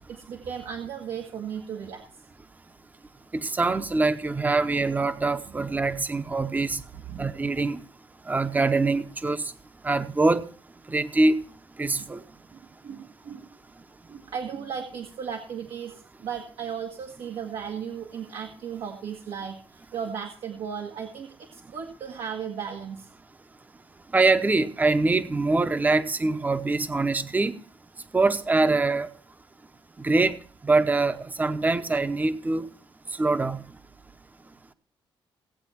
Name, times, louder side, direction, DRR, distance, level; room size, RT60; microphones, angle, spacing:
voice 1, 0.0-2.0 5.5-5.6 7.1-7.5 12.0-12.1 12.5-13.5 14.1-23.1, right 7 dB, 85° right, 2 dB, 1.6 m, -36 dB
voice 2, 3.3-6.8 7.2-7.8 8.3-9.5 9.8-10.5 10.9-11.3 11.8-12.2 24.1-27.5 28.1-29.1 30.0-30.4 30.6-32.7 33.1-33.6, right 3 dB, 15° right, 10 dB, 0.8 m, -24 dB
17.5 x 8.2 x 4.3 m, 0.43 s
cardioid pair, 135°, 10 cm